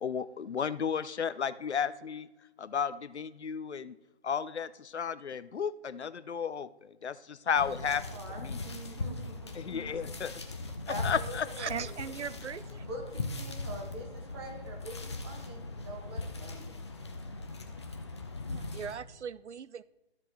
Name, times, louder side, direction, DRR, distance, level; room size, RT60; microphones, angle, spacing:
voice 1, 0.0-2.3 2.6-4.0 4.2-8.0 8.4-8.6 9.6-10.3 11.0-11.5, left 7 dB, 75° left, 16 dB, 0.6 m, -33 dB
Viento Flojo Hojas, 7.6-19.0, left 3 dB, 25° left, 0.6 m, -39 dB
voice 2, 7.8-10.1 10.9-12.4 12.8-16.8, right 1 dB, 25° right, 0 dB, 1.7 m, -45 dB
voice 3, 11.6-12.9 17.8-17.9 18.5-19.8, right 7 dB, 80° right, 18 dB, 0.5 m, -39 dB
13.5 x 7.3 x 3.1 m, 1.0 s
figure-of-eight pair, 150°, 34 cm